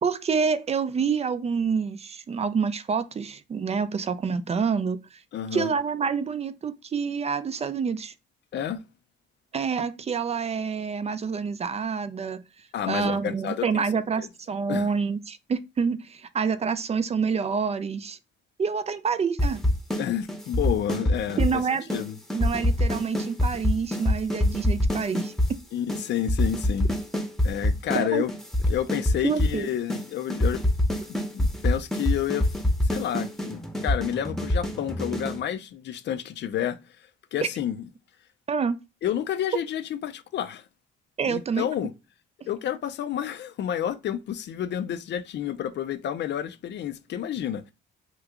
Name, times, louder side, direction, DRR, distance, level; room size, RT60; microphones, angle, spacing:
voice 1, 0.0-5.2 5.5-8.1 9.5-12.4 12.9-18.2 18.6-19.6 21.4-21.9 22.3-25.3 27.9-28.2 29.2-29.7 37.4-37.5 38.5-38.8 41.2-41.9, right 6 dB, 30° right, 0.4 m, -27 dB
voice 2, 5.3-5.7 8.5-8.8 12.7-13.8 14.2-14.3 14.7-14.9 20.0-21.6 21.9-22.1 25.7-26.9 27.4-28.3 28.7-30.6 31.1-32.5 32.9-36.8 37.3-37.8 39.0-40.6 41.3-41.9 42.5-47.7, left 10 dB, 60° left, 0.5 m, -30 dB
sound 1, 19.4-20.0 20.3-21.6 21.9-22.0 22.3-25.5 25.9-26.0 26.3-28.0 28.3-29.6 29.9-30.0 30.3-35.4, left 1 dB, ahead, 0.8 m, -24 dB
2.9 x 2.4 x 3.5 m
cardioid pair, 90°, 20 cm